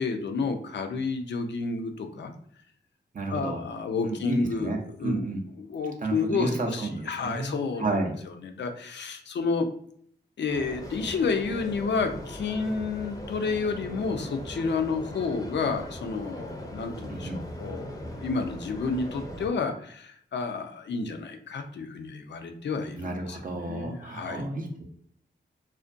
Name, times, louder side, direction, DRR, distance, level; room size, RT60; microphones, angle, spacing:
voice 1, 0.0-2.3 3.3-5.3 5.6-7.9 8.4-9.7 10.4-24.5, left 4 dB, 65° left, 6 dB, 0.4 m, -30 dB
voice 2, 3.1-3.6 4.0-5.4 6.0-7.5 7.8-8.1 17.1-17.4 22.9-24.8, right 2 dB, 45° right, 2 dB, 0.5 m, -31 dB
sound 1, 10.5-19.5, equal, 20° left, 0.6 m, -40 dB
2.5 x 2.1 x 2.4 m, 0.63 s
cardioid pair, 70°, 19 cm